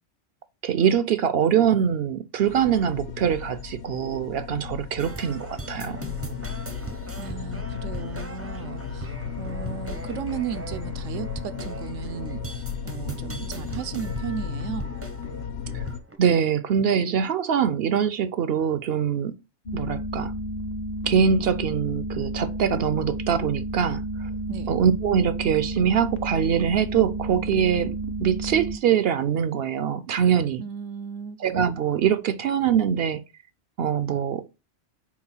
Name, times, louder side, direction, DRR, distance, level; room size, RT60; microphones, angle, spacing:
voice 1, 0.6-6.0 15.7-15.8 16.2-19.4 19.7-20.3 21.0-24.3 24.7-30.6 31.4-33.2 33.8-34.5, right 8 dB, 65° right, 0.7 m, -23 dB
sound 1, 2.5-16.0, left 7 dB, 70° left, 0.9 m, -35 dB
sound 2, 5.0-16.2, right 2 dB, 20° right, 0.5 m, -40 dB
voice 2, 7.2-14.9 24.5-24.7 30.6-31.7, right 8 dB, 85° right, 1.0 m, -35 dB
sound 3, 19.7-28.8, right 1 dB, 45° left, 0.7 m, -31 dB
4.8 x 4.1 x 5.5 m
omnidirectional pair, 1.3 m